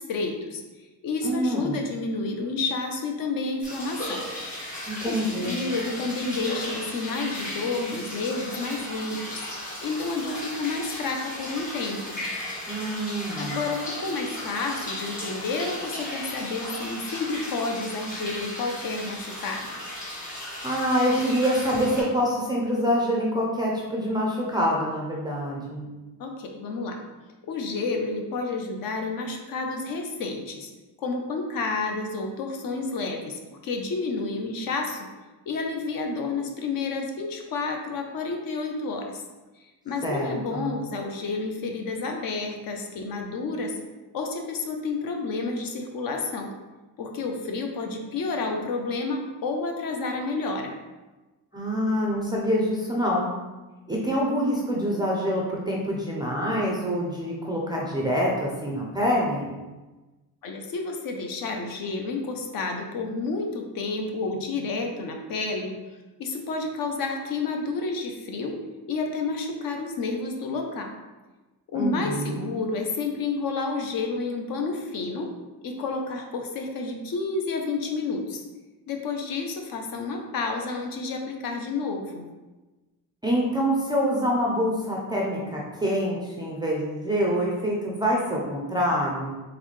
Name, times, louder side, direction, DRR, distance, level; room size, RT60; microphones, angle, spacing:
voice 1, 0.0-4.2 5.0-9.4 9.8-12.2 13.4-19.8 26.2-27.0 27.5-30.7 31.0-35.1 35.5-39.2 39.6-43.8 44.1-46.5 47.0-50.7 60.4-65.7 66.2-68.5 68.9-71.0 71.7-75.3 75.6-78.4 78.9-82.3, left 3 dB, 60° left, 3 dB, 0.7 m, -30 dB
voice 2, 1.2-1.9 4.9-5.6 12.7-13.6 20.6-25.9 40.0-40.7 51.5-53.3 53.9-59.6 71.7-72.5 83.2-89.3, equal, 10° right, -3 dB, 0.4 m, -26 dB
sound 1, 3.6-22.0, left 1 dB, 20° left, 1.3 m, -36 dB
3.9 x 3.5 x 3.1 m, 1.2 s
cardioid pair, 180°, 40 cm